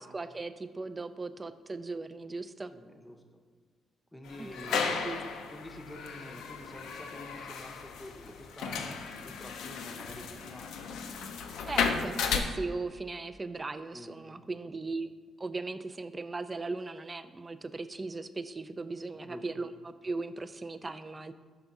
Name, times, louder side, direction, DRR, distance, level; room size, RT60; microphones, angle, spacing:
voice 1, 0.0-2.7 4.4-5.2 11.7-15.1 15.4-21.3, right 3 dB, 25° right, 12 dB, 0.3 m, -38 dB
voice 2, 2.7-3.2 4.1-5.1 5.5-10.9 13.9-14.8 19.1-19.6, left 1 dB, 10° left, 4 dB, 0.7 m, -48 dB
sound 1, 4.3-12.4, left 5 dB, 80° left, 0.5 m, -35 dB
5.7 x 3.5 x 5.2 m, 1.5 s
cardioid pair, 90°, 0 cm